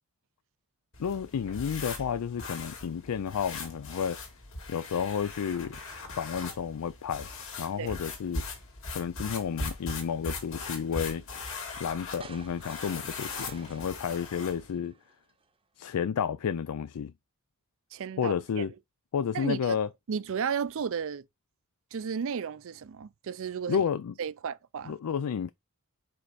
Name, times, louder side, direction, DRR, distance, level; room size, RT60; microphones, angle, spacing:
sound 1, 0.9-14.7, left 3 dB, 65° left, 1.9 m, -40 dB
voice 1, 1.0-4.2 4.7-5.8 6.2-7.3 7.6-8.4 8.9-11.2 11.8-15.0 15.8-17.1 18.2-18.7 19.1-19.9 23.7-24.1 24.9-25.5, left 7 dB, 85° left, 0.4 m, -31 dB
sound 2, 12.2-15.5, right 4 dB, 25° right, 0.7 m, -52 dB
voice 2, 17.9-18.6 19.3-19.8 20.1-21.2 21.9-23.8 24.2-24.9, right 6 dB, 65° right, 0.4 m, -33 dB
5.2 x 4.5 x 4.1 m
head